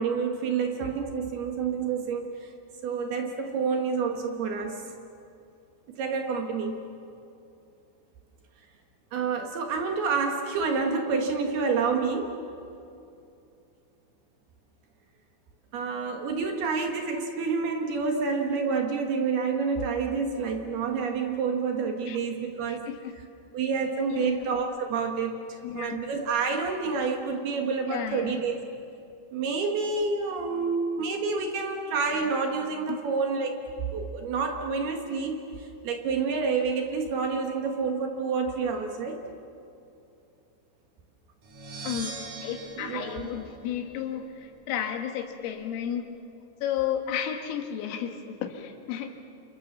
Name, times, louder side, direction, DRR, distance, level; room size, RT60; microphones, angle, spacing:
voice 1, 0.0-2.5 2.8-4.8 6.0-6.8 9.1-12.4 15.7-22.8 23.5-28.6 29.3-33.6 33.9-39.2 42.8-43.3, right 5 dB, 65° right, 4 dB, 3.0 m, -28 dB
voice 2, 22.7-23.1 24.1-24.5 25.6-26.0 27.9-28.4 32.9-33.0 41.8-42.2 42.4-46.1 46.6-49.1, left 9 dB, 85° left, 5 dB, 4.3 m, -33 dB
sound 1, 41.4-44.3, right 3 dB, 45° right, 2.6 m, -41 dB
28.5 x 28.0 x 7.3 m, 2.7 s
omnidirectional pair, 5.8 m